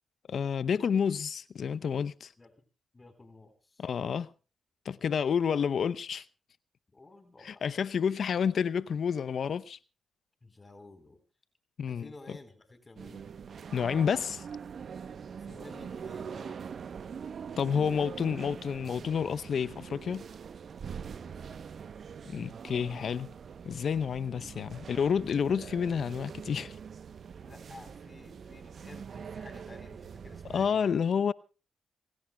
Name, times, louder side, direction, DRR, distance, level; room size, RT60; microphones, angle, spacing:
voice 1, 0.3-2.3 3.8-4.3 4.9-6.2 7.4-9.8 11.8-12.1 13.7-14.4 17.6-20.2 22.2-23.3 23.6-26.8 30.5-31.3, left 7 dB, 65° left, 0.7 m, -29 dB
voice 2, 2.9-3.9 6.9-7.7 10.4-11.2 11.9-13.3 15.4-16.6 21.2-21.9 24.3-25.0 27.4-31.0, left 2 dB, 30° left, 4.2 m, -52 dB
sound 1, 13.0-30.7, right 6 dB, 60° right, 0.9 m, -43 dB
29.0 x 16.5 x 2.3 m
supercardioid pair, 45°, 0 cm